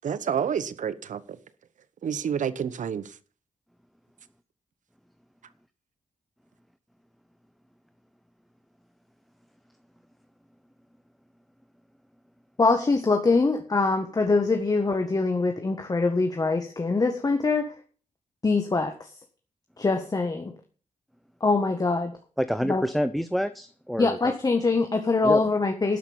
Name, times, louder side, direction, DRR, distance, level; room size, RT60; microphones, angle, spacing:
voice 1, 0.0-1.4 2.0-3.1, right 8 dB, 70° right, 1.0 m, -29 dB
voice 2, 12.6-17.7 18.4-19.1 19.8-20.5 21.4-22.1 22.7-22.8 24.0-26.0, left 3 dB, 30° left, 1.5 m, -23 dB
voice 3, 22.4-24.3 25.2-25.4, equal, ahead, 0.6 m, -27 dB
12.5 x 5.8 x 8.9 m
cardioid pair, 100°, 14 cm